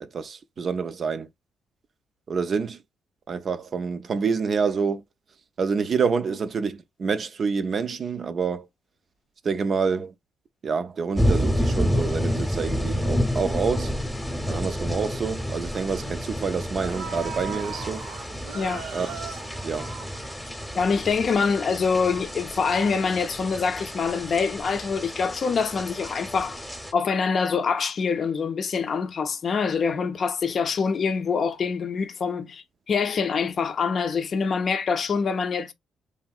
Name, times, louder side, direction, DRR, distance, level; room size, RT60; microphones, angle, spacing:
voice 1, 0.0-1.3 2.3-2.8 3.3-5.0 5.6-8.7 9.4-10.1 10.6-13.9 14.5-18.1 18.9-19.1 19.6-19.9, right 5 dB, 45° right, 0.4 m, -27 dB
sound 1, 11.2-26.9, equal, ahead, 0.8 m, -29 dB
sound 2, 16.8-20.7 21.1-21.2, right 6 dB, 90° right, 1.2 m, -38 dB
voice 2, 18.5-18.8 20.7-26.6 26.9-35.7, left 5 dB, 50° left, 0.5 m, -25 dB
3.1 x 2.7 x 2.4 m
cardioid pair, 90°, 0 cm